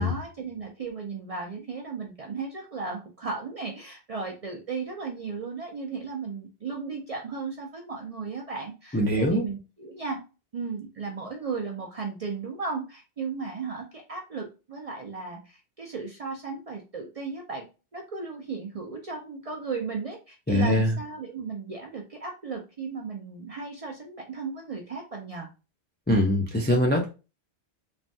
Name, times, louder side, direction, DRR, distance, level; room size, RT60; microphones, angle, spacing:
voice 1, 0.0-10.2 10.5-17.6 17.9-25.5, right 4 dB, 45° right, 1 dB, 0.5 m, -35 dB
voice 2, 8.9-9.4 20.5-20.9 26.1-27.0, left 1 dB, 20° left, 0 dB, 0.3 m, -22 dB
3.2 x 2.2 x 2.6 m, 0.31 s
omnidirectional pair, 1.1 m